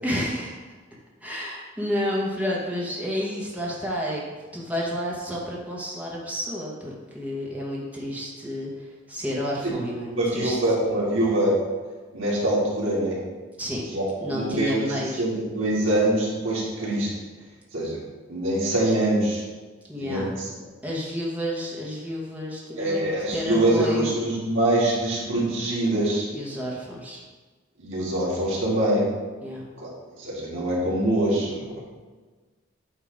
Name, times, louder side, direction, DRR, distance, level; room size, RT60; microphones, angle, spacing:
voice 1, 0.0-0.8 1.2-4.2 4.5-10.6 13.6-13.8 14.2-15.2 19.9-20.3 20.8-24.1 26.3-27.2 29.4-29.7, equal, 10° right, -5 dB, 1.2 m, -30 dB
voice 2, 10.1-11.6 12.1-13.2 13.9-14.0 14.3-14.9 15.2-17.1 17.7-18.0 18.3-19.4 20.0-20.5 22.8-26.3 27.8-29.1 29.8-29.9 30.2-31.8, right 1 dB, 85° right, -5 dB, 2.0 m, -24 dB
8.6 x 2.9 x 5.0 m, 1.4 s
head